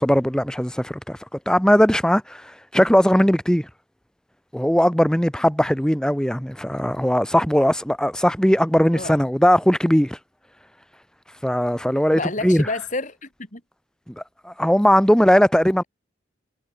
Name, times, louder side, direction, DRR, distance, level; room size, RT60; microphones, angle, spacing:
voice 1, 0.0-3.7 4.5-10.2 11.4-12.7 14.1-15.8, equal, 5° left, 1.1 m, -19 dB
voice 2, 8.9-9.2 12.1-13.6, left 2 dB, 45° left, 5.7 m, -29 dB
head